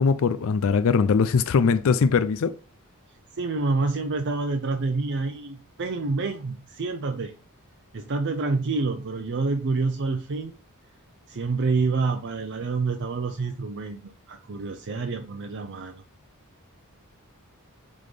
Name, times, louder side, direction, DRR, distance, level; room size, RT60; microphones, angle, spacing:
voice 1, 0.0-2.5, left 5 dB, 65° left, 0.4 m, -21 dB
voice 2, 3.3-7.4 7.9-10.5 11.3-16.0, right 3 dB, 55° right, 0.6 m, -27 dB
7.6 x 3.8 x 3.3 m
head